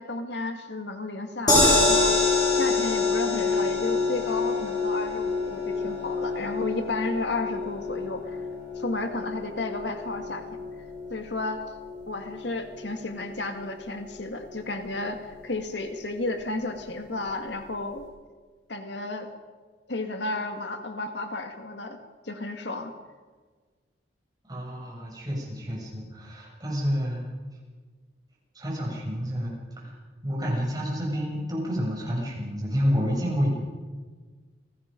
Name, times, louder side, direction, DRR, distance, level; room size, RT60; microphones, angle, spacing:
voice 1, 0.0-2.2 2.5-8.4 8.8-10.5 11.1-11.6 12.1-18.1 18.7-19.3 19.9-22.0 22.2-22.9, left 2 dB, 75° left, 6 dB, 2.0 m, -32 dB
sound 1, 1.5-13.7 14.1-14.2 14.5-14.6, left 3 dB, 25° left, 7.5 m, -27 dB
voice 2, 24.5-27.3 28.5-29.9 30.2-33.5, equal, 20° right, -3 dB, 7.5 m, -29 dB
30.0 x 19.0 x 5.3 m, 1.4 s
head